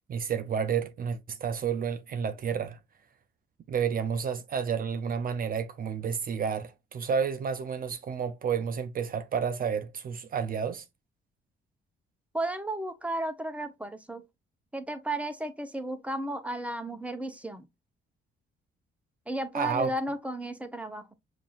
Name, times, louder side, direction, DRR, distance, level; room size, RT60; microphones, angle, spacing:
voice 1, 0.1-2.8 3.7-10.8 19.5-19.9, right 6 dB, 45° right, 0.5 m, -30 dB
voice 2, 12.3-14.2 14.7-17.7 19.3-21.1, right 1 dB, 5° right, 0.7 m, -34 dB
5.5 x 2.6 x 2.4 m
cardioid pair, 90°, 20 cm